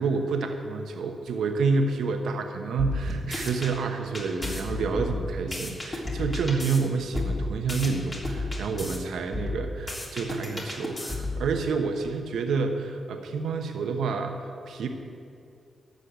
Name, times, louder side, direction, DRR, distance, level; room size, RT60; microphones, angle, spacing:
voice 1, 0.0-14.9, right 4 dB, 85° right, 4 dB, 1.0 m, -29 dB
sound 1, 2.8-3.7 4.1-6.8 7.1-9.0 9.3-11.5, left 2 dB, 30° left, 3.2 m, -32 dB
13.0 x 6.6 x 8.7 m, 2.4 s
cardioid pair, 60°, 0 cm